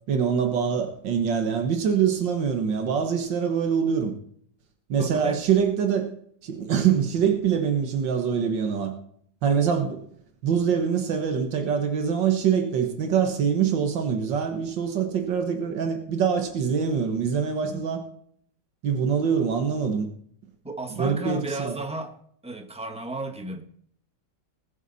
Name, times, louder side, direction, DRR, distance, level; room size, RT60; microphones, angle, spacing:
voice 1, 0.1-4.1 4.9-6.1 6.4-8.9 9.4-10.0 10.4-18.0 18.8-20.1 21.0-21.7, right 7 dB, 90° right, 5 dB, 2.0 m, -24 dB
voice 2, 5.0-5.4 9.8-9.9 17.6-17.9 20.6-22.1 22.4-23.6, right 1 dB, 5° right, 5 dB, 1.2 m, -34 dB
20.5 x 8.2 x 4.1 m, 0.63 s
omnidirectional pair, 1.9 m